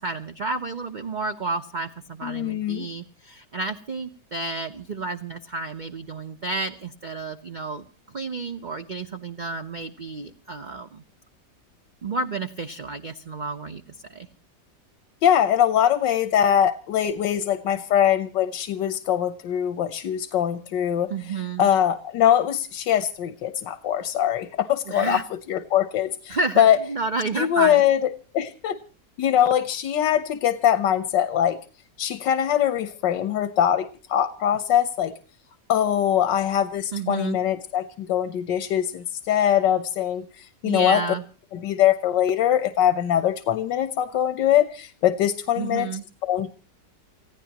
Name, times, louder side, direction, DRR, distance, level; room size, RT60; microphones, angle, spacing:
voice 1, 0.0-7.9 8.1-11.0 12.0-14.3 21.1-21.7 24.9-25.2 26.3-27.8 36.9-37.4 40.6-41.2 45.6-46.0, right 3 dB, 40° right, 6 dB, 0.7 m, -31 dB
voice 2, 2.2-2.9 15.2-26.8 27.3-28.8 29.2-31.6 32.0-35.1 35.7-41.0 41.5-45.9 46.2-46.5, left 10 dB, 90° left, 11 dB, 1.6 m, -22 dB
29.0 x 15.5 x 2.9 m, 0.36 s
omnidirectional pair, 1.9 m